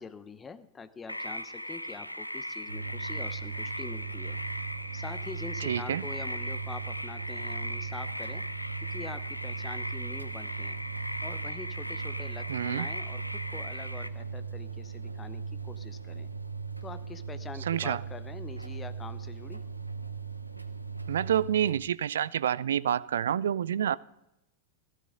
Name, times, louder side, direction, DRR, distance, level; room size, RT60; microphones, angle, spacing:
voice 1, 0.0-4.4 4.9-8.4 8.8-10.8 11.2-16.3 16.8-19.6, left 5 dB, 15° left, 13 dB, 0.9 m, -45 dB
sound 1, 1.1-14.1, equal, 90° left, 0.5 m, -38 dB
sound 2, 2.7-21.8, right 5 dB, 85° right, 0.7 m, -39 dB
voice 2, 5.6-6.1 12.5-12.9 17.7-18.0 21.1-24.0, right 9 dB, 65° right, 20 dB, 0.4 m, -28 dB
15.5 x 13.0 x 3.7 m, 0.87 s
figure-of-eight pair, 90°, 0 cm